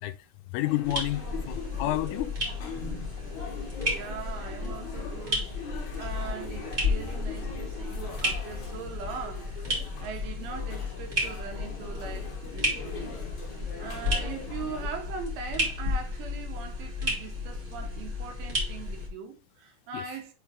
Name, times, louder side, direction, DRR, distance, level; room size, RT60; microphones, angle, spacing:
voice 1, 0.5-2.3 19.9-20.0, left 16 dB, 85° left, 3.1 m, -30 dB
sound 1, 0.5-14.9, left 4 dB, 65° left, 1.8 m, -42 dB
sound 2, 0.8-19.1, left 2 dB, 25° right, 1.4 m, -33 dB
voice 2, 3.8-5.5 5.9-13.1 13.8-20.3, right 6 dB, 80° right, 3.5 m, -40 dB
7.9 x 3.8 x 3.5 m
omnidirectional pair, 5.6 m